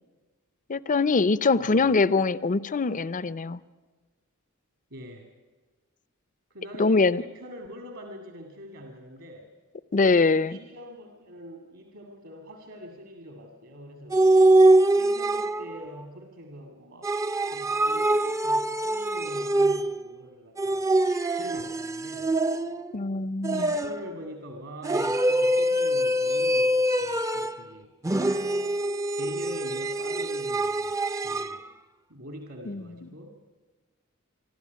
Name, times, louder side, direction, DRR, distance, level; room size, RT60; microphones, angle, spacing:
voice 1, 0.7-3.6 6.8-7.2 9.9-10.6 22.9-23.7 32.7-33.1, left 4 dB, 35° left, 17 dB, 0.5 m, -23 dB
voice 2, 1.5-1.9 4.9-5.3 6.5-9.5 10.5-14.2 14.9-17.1 17.5-22.3 23.5-27.9 29.2-31.7 32.1-33.4, equal, 65° right, 4 dB, 2.3 m, -44 dB
sound 1, 14.1-15.8 17.0-20.1 20.6-22.9 23.4-24.1 24.8-27.6 28.0-31.6, right 1 dB, 15° right, 0.5 m, -24 dB
26.5 x 12.5 x 9.4 m, 1.4 s
head